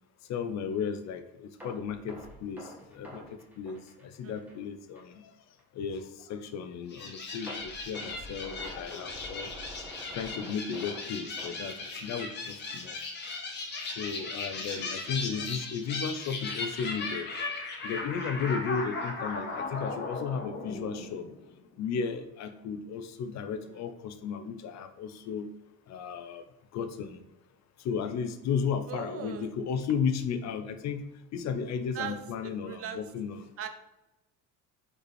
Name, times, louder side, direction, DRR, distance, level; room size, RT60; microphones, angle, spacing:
voice 1, 0.3-5.3 5.7-9.5 10.1-13.0 13.8-17.3 17.8-21.3 21.8-25.5 25.9-26.4 26.7-27.2 27.8-31.0 31.3-33.5, left 6 dB, 50° left, 8 dB, 0.7 m, -34 dB
sound 1, 1.6-4.6 4.9-5.1 5.6-5.7 7.5-12.4 12.7-12.9 13.3-13.4, equal, 5° right, 1.4 m, -47 dB
voice 2, 4.2-4.6 15.3-15.5 23.6-23.9 28.9-29.5 31.9-33.0 33.6-33.7, right 8 dB, 40° right, 9 dB, 0.6 m, -40 dB
sound 2, 6.9-21.5, left 3 dB, 30° left, 1.3 m, -37 dB
5.4 x 4.8 x 4.3 m, 0.95 s
cardioid pair, 155°, 34 cm